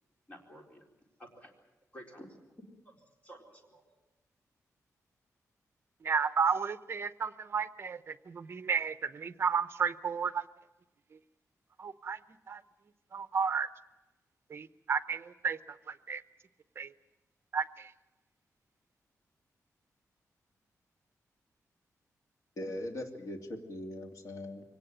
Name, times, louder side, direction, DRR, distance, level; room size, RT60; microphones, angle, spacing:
voice 1, 0.3-0.8 1.2-1.5 1.9-2.4 2.9-3.0 3.2-3.8, equal, 25° left, 1 dB, 4.1 m, -51 dB
voice 2, 6.0-10.5 11.8-12.2 12.5-12.6 13.1-13.7 14.5-16.2 16.8-16.9 17.5-17.9, right 6 dB, 45° right, 12 dB, 0.8 m, -32 dB
voice 3, 22.6-24.6, left 1 dB, 65° left, 4 dB, 2.7 m, -40 dB
23.5 x 18.0 x 8.9 m, 1.1 s
wide cardioid pair, 175°, 6 cm